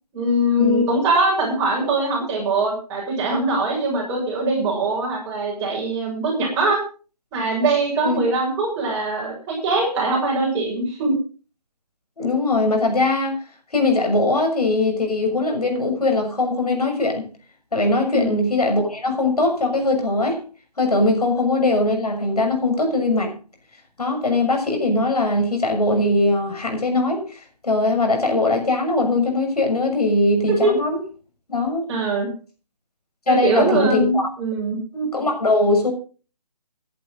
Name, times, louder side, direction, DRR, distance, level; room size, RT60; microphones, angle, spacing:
voice 1, 0.1-6.8 7.3-11.1 18.1-18.4 30.5-30.7 31.9-32.3 33.3-34.8, right 2 dB, 15° right, 7.0 m, -22 dB
voice 2, 12.2-13.4 13.7-17.3 17.7-20.4 20.8-23.3 24.0-31.0 31.5-31.8 33.3-34.3 34.9-35.9, left 2 dB, 65° left, 6.6 m, -21 dB
20.0 x 11.0 x 3.9 m
figure-of-eight pair, 155°, 21 cm